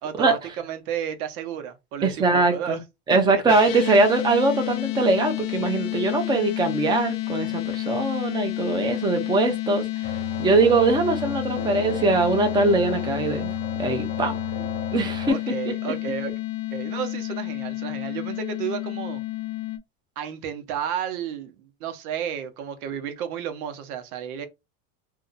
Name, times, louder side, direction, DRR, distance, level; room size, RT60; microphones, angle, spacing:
voice 1, 0.0-2.8 3.1-3.4 15.3-16.3 16.7-19.2 20.2-24.5, right 9 dB, 90° right, 0.9 m, -32 dB
voice 2, 2.0-2.8 3.1-13.5 13.8-14.3 14.9-15.4 15.7-15.8, right 3 dB, 10° right, 0.5 m, -22 dB
sound 1, 3.5-19.8, left 18 dB, 55° left, 0.6 m, -30 dB
sound 2, 10.0-15.3, left 2 dB, 20° left, 0.7 m, -35 dB
2.7 x 2.2 x 3.9 m
supercardioid pair, 135°, 43 cm